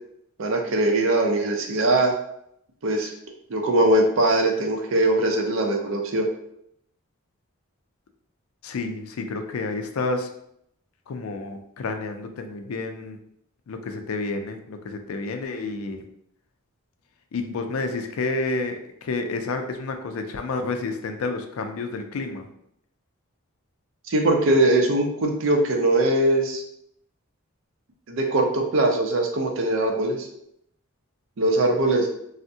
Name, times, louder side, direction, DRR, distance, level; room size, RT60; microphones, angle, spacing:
voice 1, 0.4-2.1 2.8-3.1 3.5-6.3 24.1-26.6 28.1-30.3 31.4-32.1, right 1 dB, 65° right, 2 dB, 0.5 m, -21 dB
voice 2, 8.6-10.3 11.1-13.2 13.7-16.1 17.3-22.5, left 3 dB, 75° left, 6 dB, 0.4 m, -30 dB
3.4 x 2.1 x 2.7 m, 0.74 s
head